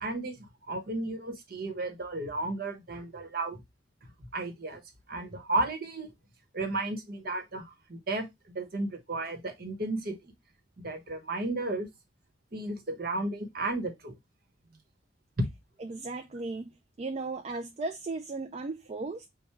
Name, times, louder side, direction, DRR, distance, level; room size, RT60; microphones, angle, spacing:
voice 1, 0.0-3.6 4.2-4.8 5.1-6.1 6.5-10.3 10.8-11.9 12.5-14.1 15.4-15.5, right 2 dB, 50° right, 1.0 m, -33 dB
voice 2, 15.8-19.3, right 3 dB, 35° right, 0.3 m, -36 dB
4.3 x 2.2 x 4.5 m
head